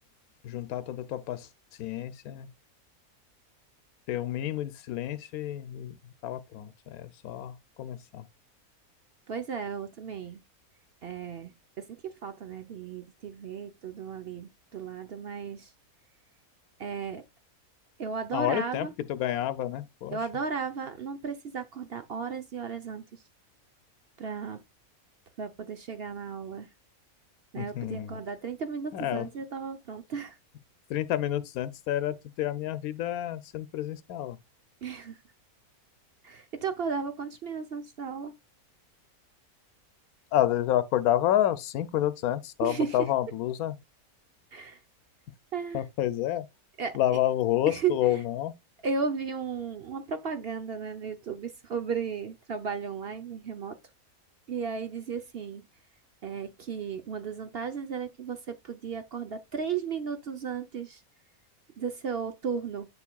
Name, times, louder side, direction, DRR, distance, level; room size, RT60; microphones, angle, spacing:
voice 1, 0.4-1.5 1.8-2.5 4.1-6.0 6.2-8.3 18.3-20.2 27.6-28.1 28.9-29.3 30.9-34.4 40.3-43.7 45.7-46.5 46.9-48.5, left 12 dB, 90° left, 1.1 m, -29 dB
voice 2, 9.3-10.4 11.0-15.7 16.8-17.2 18.0-18.9 20.1-23.2 24.2-24.6 25.4-26.7 27.5-30.4 34.8-35.2 36.2-38.3 42.6-43.1 44.5-44.8 45.5-45.8 46.8-47.0 47.7-48.2 48.8-53.8 54.5-55.6 56.2-61.0 61.8-62.9, right 6 dB, 55° right, 0.8 m, -35 dB
7.1 x 7.0 x 2.2 m
omnidirectional pair, 1.5 m